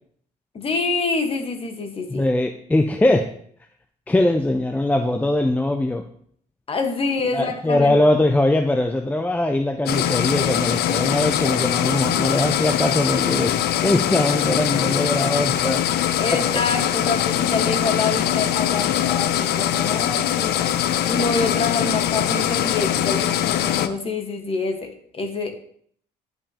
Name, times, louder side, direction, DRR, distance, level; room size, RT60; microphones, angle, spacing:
voice 1, 0.5-2.3 6.7-8.0 16.2-20.6 21.0-25.5, left 3 dB, 35° left, 5 dB, 1.3 m, -26 dB
voice 2, 2.1-3.3 4.1-6.0 7.3-15.8 16.3-16.4, left 1 dB, 10° left, 6 dB, 0.5 m, -21 dB
sound 1, 9.9-23.9, left 11 dB, 70° left, 0.5 m, -22 dB
10.5 x 5.5 x 2.9 m, 0.62 s
cardioid pair, 110°, 17 cm